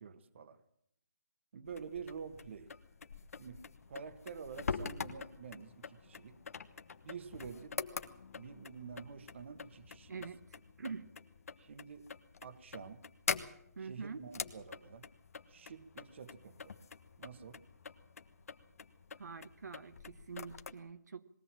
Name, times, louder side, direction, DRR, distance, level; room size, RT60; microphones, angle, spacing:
voice 1, 0.0-0.6 1.5-2.7 3.4-3.6 3.9-6.4 7.0-7.8 8.4-10.3 11.6-12.1 12.4-13.0 13.8-15.1 15.5-16.7 17.2-17.6, right 6 dB, 40° right, 12 dB, 1.3 m, -48 dB
sound 1, 1.7-20.7, left 5 dB, 55° left, 1.3 m, -45 dB
voice 2, 10.1-11.1 13.8-14.2 19.2-21.3, right 5 dB, 70° right, 9 dB, 1.1 m, -46 dB
21.5 x 16.5 x 7.5 m, 0.71 s
hypercardioid pair, 170°, 9 cm